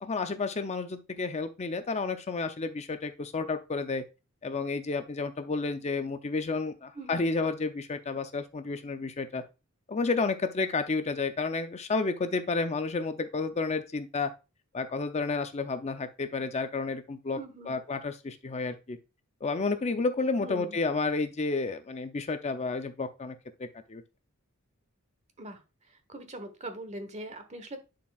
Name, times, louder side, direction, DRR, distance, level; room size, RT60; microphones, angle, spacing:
voice 1, 0.0-4.0 4.4-9.4 9.9-14.3 14.7-17.4 17.7-19.0 19.4-23.3 23.6-24.0, left 3 dB, 30° left, 8 dB, 0.5 m, -31 dB
voice 2, 6.9-7.3 17.3-17.8 20.4-20.8 25.4-25.6 25.9-27.8, right 1 dB, 35° right, 8 dB, 1.1 m, -42 dB
10.5 x 4.4 x 2.4 m, 0.29 s
head